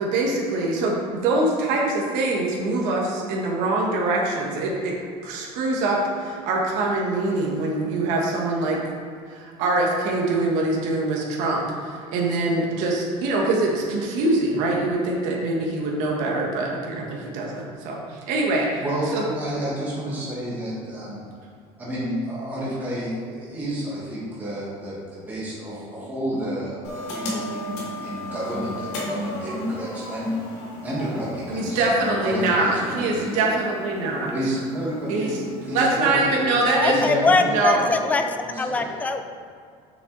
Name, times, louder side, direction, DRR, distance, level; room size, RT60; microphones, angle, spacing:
voice 1, 0.0-4.9 5.2-8.8 9.3-18.8 19.1-19.2 31.5-34.3 35.1-35.3 35.7-37.0 37.5-37.8, right 2 dB, 65° right, -2 dB, 1.5 m, -24 dB
voice 2, 18.8-21.2 21.8-33.4 34.3-35.3 35.6-39.1, right 1 dB, 10° right, -8 dB, 1.7 m, -30 dB
sound 1, 26.8-36.0, left 2 dB, 55° left, 1.9 m, -36 dB
voice 3, 36.8-39.2, left 3 dB, 10° left, 7 dB, 0.3 m, -22 dB
6.5 x 6.1 x 3.9 m, 2.2 s
cardioid pair, 175°, 14 cm